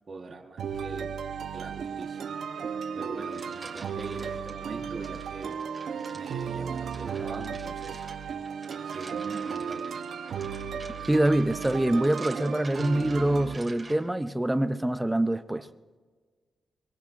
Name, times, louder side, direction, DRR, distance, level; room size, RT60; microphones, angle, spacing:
voice 1, 0.1-1.1 1.5-2.2 2.9-5.6 6.1-8.0 8.8-9.8, right 4 dB, 45° right, 1.4 m, -43 dB
sound 1, 0.6-13.6, right 6 dB, 70° right, 0.9 m, -35 dB
sound 2, 3.0-4.5 5.0-14.2, right 3 dB, 25° right, 2.5 m, -48 dB
voice 2, 11.1-15.7, right 1 dB, 10° right, 0.6 m, -25 dB
24.5 x 23.0 x 2.6 m
cardioid pair, 110°, 0 cm